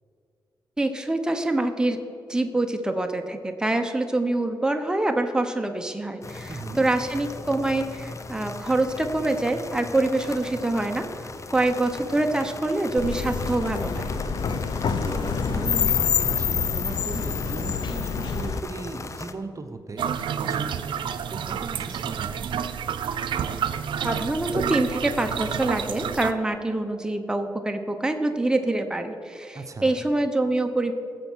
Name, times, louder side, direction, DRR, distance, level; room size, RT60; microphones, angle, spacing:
voice 1, 0.8-2.0 2.3-11.0 11.5-14.1 24.0-30.9, right 2 dB, 10° right, 5 dB, 1.1 m, -25 dB
sound 1, 6.2-19.3, left 3 dB, 40° left, 0.9 m, -38 dB
voice 2, 6.5-6.9 15.0-22.6 29.5-30.0, right 3 dB, 40° right, 6 dB, 1.1 m, -38 dB
sound 2, 13.0-18.6, left 6 dB, 75° left, 0.8 m, -26 dB
sound 3, 20.0-26.3, right 8 dB, 85° right, 0.6 m, -29 dB
15.5 x 7.2 x 6.3 m, 2.5 s
cardioid pair, 70°, 8 cm